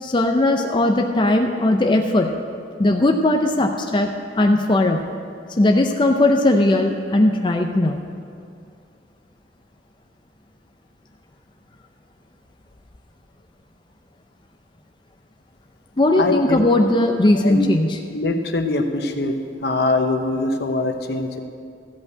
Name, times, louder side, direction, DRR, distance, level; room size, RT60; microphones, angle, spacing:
voice 1, 0.0-2.4 2.8-5.1 5.6-8.0 16.0-18.0, left 1 dB, 30° left, 3 dB, 0.5 m, -18 dB
voice 2, 16.2-16.6 17.4-17.7 18.1-19.3 19.6-21.4, left 2 dB, 65° left, 5 dB, 0.9 m, -22 dB
14.5 x 5.4 x 8.4 m, 2.4 s
head